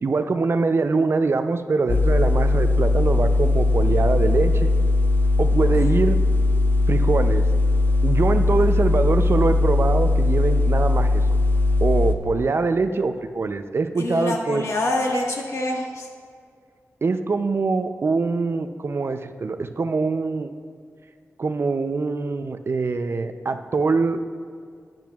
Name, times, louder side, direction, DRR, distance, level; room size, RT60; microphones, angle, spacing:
voice 1, 0.0-4.7 5.4-6.2 6.9-7.5 8.0-11.2 11.8-14.6 17.0-20.5 21.4-24.2, right 4 dB, 50° right, 9 dB, 0.5 m, -23 dB
sound 1, 1.9-12.1, left 2 dB, 40° left, 0.5 m, -19 dB
voice 2, 14.0-16.1, left 1 dB, 70° left, -1 dB, 1.5 m, -26 dB
12.0 x 10.5 x 2.4 m, 2.2 s
wide cardioid pair, 90°, 5 cm